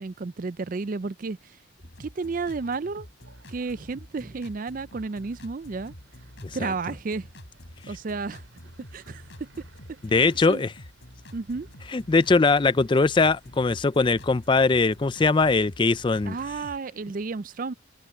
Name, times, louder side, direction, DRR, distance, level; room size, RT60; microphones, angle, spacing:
voice 1, 0.0-1.6 2.0-3.1 3.5-5.9 6.5-7.3 7.9-8.4 8.9-9.5 10.1-10.6 11.3-11.7 16.3-17.7, right 4 dB, 40° right, 0.4 m, -32 dB
sound 1, 1.8-16.8, left 1 dB, 60° left, 5.4 m, -47 dB
sound 2, 2.1-16.1, right 2 dB, 75° right, 6.3 m, -59 dB
voice 2, 10.0-10.7 11.9-16.3, left 3 dB, 25° left, 0.4 m, -21 dB
head